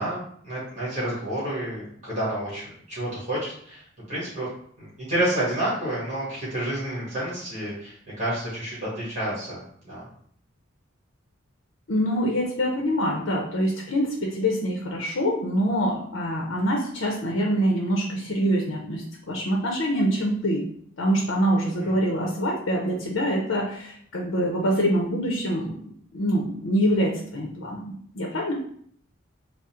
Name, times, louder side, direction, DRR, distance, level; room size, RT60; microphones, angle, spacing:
voice 1, 0.0-4.5 4.8-10.0 21.8-21.9, right 1 dB, 35° right, -8 dB, 1.3 m, -30 dB
voice 2, 11.9-20.6 21.0-28.5, equal, 75° left, 0 dB, 0.6 m, -25 dB
3.7 x 2.1 x 4.2 m, 0.63 s
head